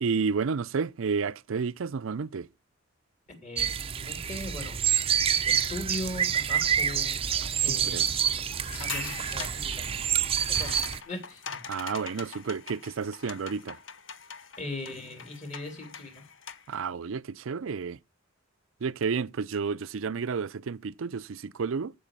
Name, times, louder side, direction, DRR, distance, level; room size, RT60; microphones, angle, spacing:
voice 1, 0.0-2.5 7.4-7.5 7.9-8.1 11.7-13.8 16.7-18.0 18.8-21.9, right 5 dB, 80° right, 0.5 m, -31 dB
voice 2, 3.3-7.2 7.6-8.1 8.8-10.0 10.5-11.6 11.9-12.0 14.6-16.2, left 1 dB, 35° left, 3.0 m, -40 dB
sound 1, 3.6-11.0, right 8 dB, 25° right, 0.5 m, -27 dB
sound 2, 8.6-16.8, left 7 dB, 70° left, 0.9 m, -43 dB
14.5 x 4.9 x 6.6 m
head